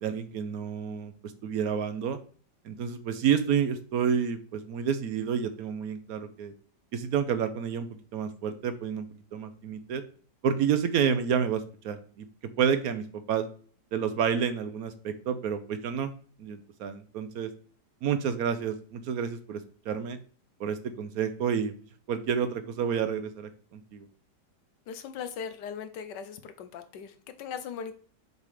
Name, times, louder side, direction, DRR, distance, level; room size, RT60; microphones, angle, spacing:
voice 1, 0.0-2.2 2.6-6.5 6.9-9.1 9.3-10.0 10.4-12.3 12.6-13.5 13.9-16.1 16.4-17.5 18.0-19.6 19.9-20.2 20.6-21.7 22.1-24.1, right 7 dB, 65° right, 10 dB, 1.0 m, -29 dB
voice 2, 24.9-28.0, left 7 dB, 80° left, 10 dB, 1.4 m, -39 dB
6.7 x 3.6 x 4.8 m, 0.43 s
omnidirectional pair, 1.8 m